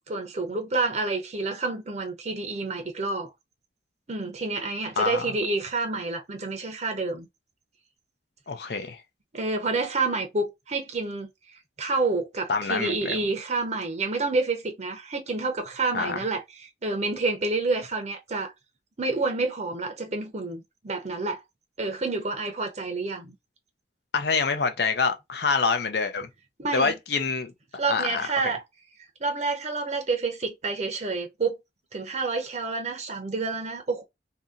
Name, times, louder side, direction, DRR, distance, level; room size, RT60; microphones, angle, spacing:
voice 1, 0.1-3.3 4.1-7.3 9.3-11.3 11.8-18.5 19.0-21.4 21.8-23.3 26.6-26.9 27.8-28.6 29.2-31.6 31.9-34.0, right 3 dB, 40° right, 0.7 m, -28 dB
voice 2, 8.5-9.0 12.5-13.2 15.9-16.3 24.1-26.3 26.7-27.5 27.9-28.6, left 4 dB, 60° left, 0.6 m, -26 dB
2.8 x 2.7 x 3.7 m
head